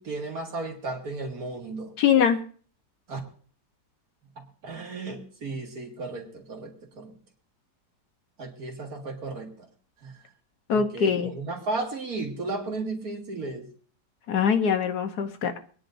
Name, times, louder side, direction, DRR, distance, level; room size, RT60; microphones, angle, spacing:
voice 1, 0.0-1.9 3.1-3.2 4.4-7.1 8.4-9.5 10.0-10.1 10.7-13.7, right 3 dB, 60° right, 2 dB, 2.3 m, -34 dB
voice 2, 2.0-2.4 10.7-11.3 14.3-15.6, left 7 dB, 70° left, 7 dB, 1.5 m, -23 dB
24.5 x 9.9 x 2.6 m, 0.44 s
omnidirectional pair, 1.8 m